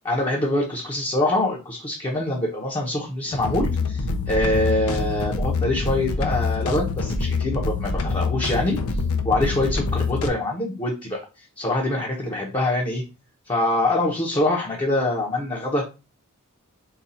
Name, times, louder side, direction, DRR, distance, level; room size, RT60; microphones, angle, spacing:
voice 1, 0.0-8.8 9.2-11.2 11.6-13.0 13.5-15.8, left 1 dB, 25° left, -2 dB, 0.8 m, -24 dB
sound 1, 3.2-10.3, left 4 dB, 70° left, 0.6 m, -25 dB
4.0 x 2.3 x 4.1 m, 0.29 s
head